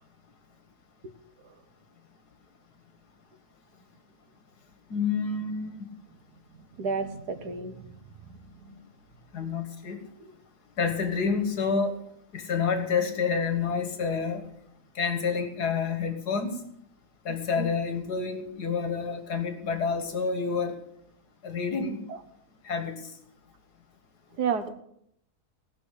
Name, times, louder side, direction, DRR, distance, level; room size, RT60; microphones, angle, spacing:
voice 1, 4.9-5.8 9.3-10.0 10.8-12.0 12.3-14.4 15.0-16.6 17.3-20.8 21.4-22.0 22.7-23.0, left 5 dB, 80° left, 7 dB, 2.0 m, -28 dB
voice 2, 6.8-7.9 8.6-8.8 17.6-17.7 22.1-22.2 24.4-24.7, right 5 dB, 90° right, 9 dB, 1.8 m, -31 dB
17.5 x 6.1 x 8.3 m, 0.72 s
omnidirectional pair, 1.7 m